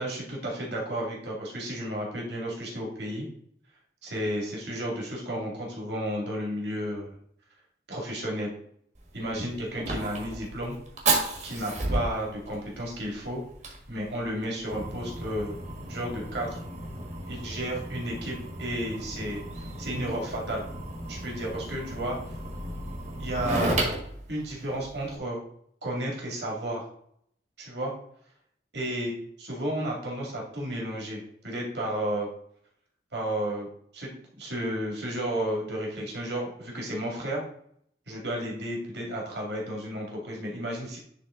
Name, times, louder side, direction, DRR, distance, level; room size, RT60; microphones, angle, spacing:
voice 1, 0.0-3.3 4.0-7.1 7.9-8.5 9.1-10.8 11.4-13.4 13.9-15.6 15.9-16.6 17.3-20.6 21.1-22.2 23.2-23.9 24.3-25.4 25.8-26.9 27.6-27.9 28.7-32.3 33.1-33.7 33.9-37.4 38.1-41.0, right 1 dB, 75° right, -2 dB, 2.3 m, -32 dB
Fire, 8.9-25.2, right 2 dB, 40° right, 1.4 m, -34 dB
9.9 x 3.7 x 3.7 m, 0.66 s
head